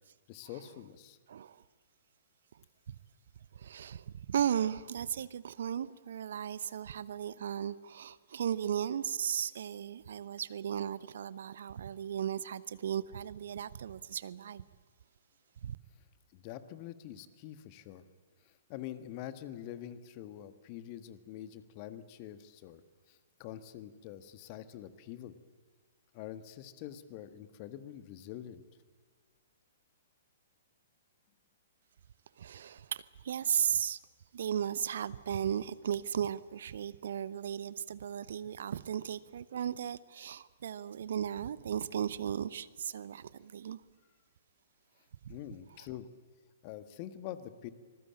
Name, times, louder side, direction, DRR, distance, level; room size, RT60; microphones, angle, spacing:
voice 1, 0.3-1.2 16.3-18.0 18.7-22.8 23.1-25.4 26.1-28.6 45.3-46.1 46.6-47.7, left 11 dB, 35° left, 1.6 m, -45 dB
voice 2, 3.5-14.6 15.6-15.8 32.4-34.0 34.3-43.8, right 9 dB, 60° right, 0.8 m, -36 dB
25.5 x 20.5 x 8.9 m
figure-of-eight pair, 115°, 0 cm